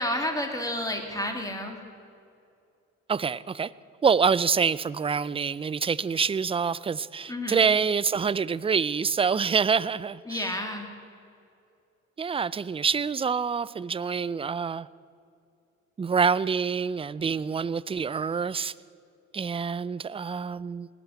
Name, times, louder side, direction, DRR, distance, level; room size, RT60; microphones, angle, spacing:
voice 1, 0.0-1.8 7.3-7.7 10.3-10.9, left 1 dB, 10° left, 4 dB, 2.5 m, -31 dB
voice 2, 3.1-3.7 4.0-10.4 12.2-14.9 16.0-18.7 19.3-20.9, right 6 dB, 20° right, 19 dB, 0.4 m, -26 dB
19.0 x 8.0 x 8.3 m, 2.5 s
cardioid pair, 90°, 30 cm